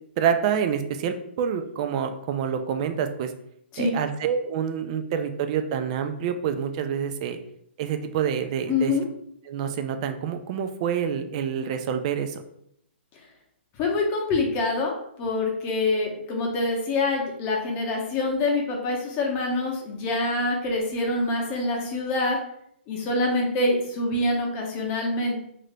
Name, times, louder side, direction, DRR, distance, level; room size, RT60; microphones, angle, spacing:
voice 1, 0.2-3.3 3.8-7.4 7.8-8.9 9.5-12.4, right 8 dB, 35° right, 7 dB, 0.3 m, -27 dB
voice 2, 8.7-9.1 13.8-22.4 22.9-25.4, left 2 dB, 30° left, 0 dB, 0.8 m, -25 dB
2.8 x 2.6 x 3.2 m, 0.72 s
hypercardioid pair, 150°, 6 cm